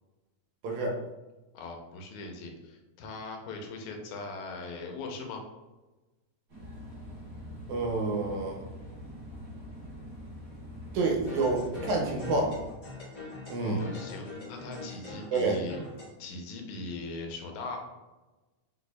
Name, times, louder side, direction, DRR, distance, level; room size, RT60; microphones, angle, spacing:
voice 1, 0.6-1.0 7.7-8.6 10.9-12.6 13.5-13.8 15.3-15.6, right 3 dB, 80° right, 1 dB, 2.1 m, -28 dB
voice 2, 1.5-5.4 13.6-15.8 16.2-17.8, left 3 dB, 90° left, 2 dB, 2.2 m, -40 dB
sound 1, 6.5-12.8, equal, 50° right, 2.2 m, -44 dB
sound 2, 11.1-16.1, left 2 dB, 30° left, 0.8 m, -42 dB
5.0 x 4.1 x 2.3 m, 1.1 s
omnidirectional pair, 3.3 m